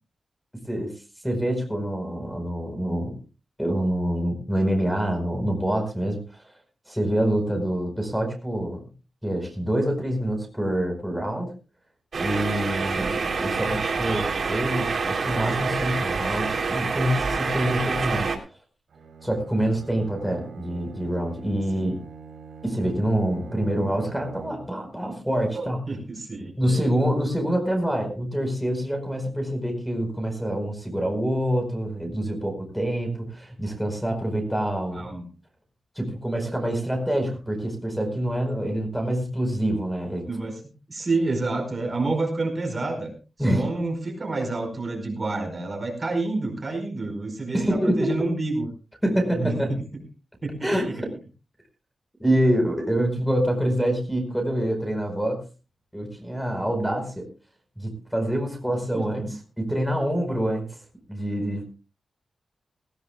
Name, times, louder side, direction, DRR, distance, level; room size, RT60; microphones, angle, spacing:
voice 1, 1.2-3.2 3.6-6.5 6.9-8.8 9.2-11.5 12.2-13.1 13.4-18.3 19.2-21.9 22.6-25.8 26.6-35.1 35.9-40.3 43.4-43.7 47.5-48.3 49.0-49.7 50.6-51.1 52.2-55.4 55.9-57.3 57.8-60.7 61.1-61.6, right 1 dB, ahead, 4 dB, 4.8 m, -26 dB
sound 1, 12.1-18.4, right 4 dB, 55° right, 3.5 m, -27 dB
Bowed string instrument, 18.9-24.9, right 6 dB, 80° right, 5.3 m, -44 dB
voice 2, 25.5-26.9 34.9-35.2 40.3-40.6 40.9-43.1 43.5-48.7 49.4-49.6 50.4-51.0 58.9-59.3, right 3 dB, 35° right, 4 dB, 4.9 m, -29 dB
18.5 x 18.5 x 2.4 m, 0.33 s
wide cardioid pair, 130°, 0 cm